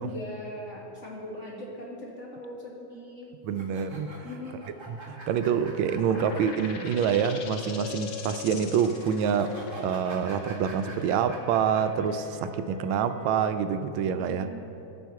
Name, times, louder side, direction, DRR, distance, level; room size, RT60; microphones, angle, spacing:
voice 1, 0.0-3.3 4.2-4.6 14.2-14.6, left 1 dB, 35° left, -4 dB, 2.0 m, -40 dB
voice 2, 3.4-4.1 4.9-14.5, right 7 dB, 85° right, 10 dB, 1.4 m, -27 dB
sound 1, 3.5-7.1 7.4-7.5 8.9-12.0, right 2 dB, 15° right, 1.6 m, -45 dB
sound 2, 5.6-13.6, left 3 dB, 60° right, 2.2 m, -43 dB
sound 3, 5.9-13.3, left 5 dB, 65° left, 1.3 m, -44 dB
17.5 x 6.4 x 4.7 m, 2.9 s
omnidirectional pair, 2.2 m